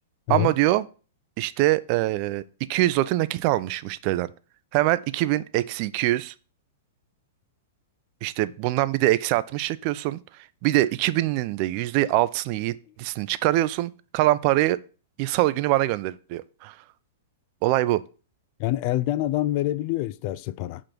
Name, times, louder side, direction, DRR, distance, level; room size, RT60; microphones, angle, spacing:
voice 1, 0.3-0.8 1.4-2.4 2.7-4.3 4.7-6.3 8.2-10.2 10.6-14.8 15.2-16.7 17.6-18.0, right 16 dB, 45° right, 0.4 m, -23 dB
voice 2, 18.6-20.8, left 15 dB, 45° left, 0.4 m, -26 dB
6.6 x 3.7 x 6.0 m
figure-of-eight pair, 105°, 0 cm